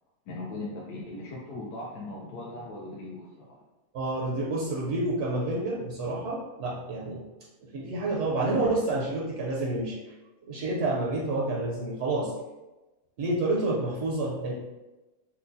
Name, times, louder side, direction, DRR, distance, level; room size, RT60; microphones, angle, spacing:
voice 1, 0.3-3.6, left 2 dB, 80° left, -4 dB, 1.1 m, -39 dB
voice 2, 3.9-7.2 7.7-10.0 10.5-12.3 13.2-14.5, right 2 dB, 65° right, -4 dB, 0.7 m, -29 dB
4.5 x 2.2 x 2.6 m, 1.1 s
omnidirectional pair, 1.7 m